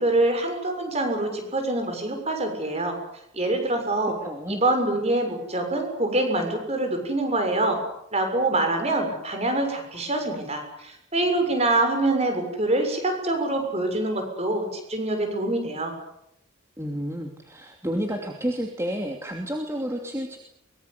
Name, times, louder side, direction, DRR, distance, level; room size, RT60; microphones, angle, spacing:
voice 1, 0.0-3.0 3.3-4.1 4.5-7.8 8.1-15.9, right 2 dB, 30° right, 5 dB, 6.7 m, -25 dB
voice 2, 4.2-4.6 16.8-20.4, equal, 15° right, 2 dB, 2.8 m, -30 dB
24.0 x 22.5 x 8.3 m, 0.80 s
head